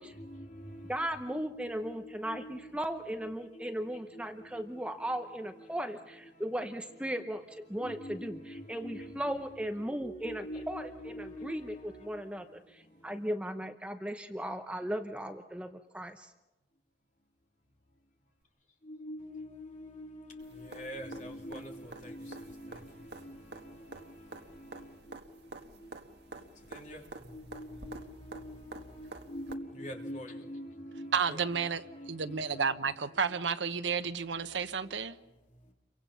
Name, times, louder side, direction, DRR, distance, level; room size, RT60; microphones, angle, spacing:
voice 1, 0.0-4.3 4.5-4.7 5.0-5.1 5.6-5.7 7.8-9.5 9.8-12.1 18.8-25.4 25.8-25.9 26.7-32.8 34.3-34.4, equal, 40° left, 3.1 m, -45 dB
voice 2, 0.9-16.3, equal, 5° right, 0.8 m, -37 dB
sound 1, 20.4-29.5 31.5-31.6, right 2 dB, 65° right, 1.5 m, -49 dB
voice 3, 31.1-35.2, right 6 dB, 85° right, 1.0 m, -32 dB
29.0 x 24.0 x 5.7 m
head